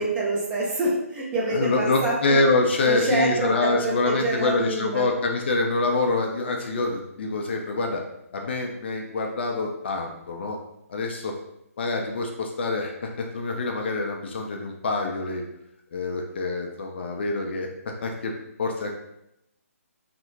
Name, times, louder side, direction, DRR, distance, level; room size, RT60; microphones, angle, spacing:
voice 1, 0.0-2.1 2.8-5.1, right 2 dB, 15° right, -5 dB, 0.5 m, -26 dB
voice 2, 1.5-8.0 8.3-10.6 10.9-11.4 11.8-15.4 15.9-18.3 18.6-18.9, left 3 dB, 45° left, 2 dB, 0.4 m, -26 dB
2.8 x 2.0 x 2.7 m, 0.82 s
figure-of-eight pair, 145°, 8 cm